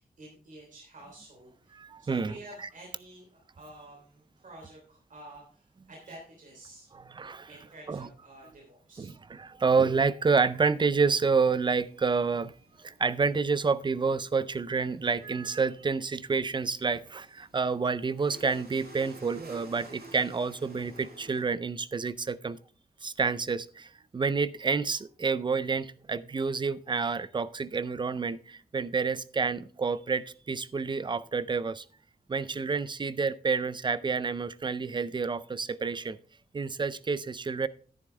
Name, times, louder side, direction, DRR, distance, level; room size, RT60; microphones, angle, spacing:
voice 1, 0.0-6.9 7.5-9.1, right 1 dB, 55° right, -1 dB, 3.2 m, -50 dB
voice 2, 1.7-2.7 6.9-7.5 7.9-8.1 9.0-12.5 12.8-22.6 23.0-31.9 32.3-36.2 36.5-37.7, right 4 dB, 30° right, 16 dB, 0.4 m, -29 dB
sound 1, 10.3-21.4, right 1 dB, 85° right, 6.3 m, -53 dB
11.0 x 9.7 x 3.3 m, 0.42 s
wide cardioid pair, 180°, 16 cm